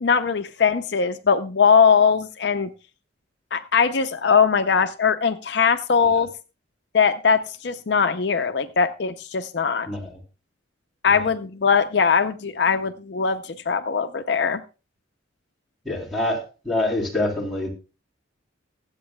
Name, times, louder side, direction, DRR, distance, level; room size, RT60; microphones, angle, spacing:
voice 1, 0.0-2.7 3.5-6.3 6.9-9.9 11.0-14.6, left 6 dB, 60° left, 9 dB, 0.5 m, -20 dB
voice 2, 15.8-16.4 16.6-17.7, left 1 dB, ahead, -6 dB, 3.2 m, -25 dB
23.5 x 8.0 x 2.2 m, 0.32 s
head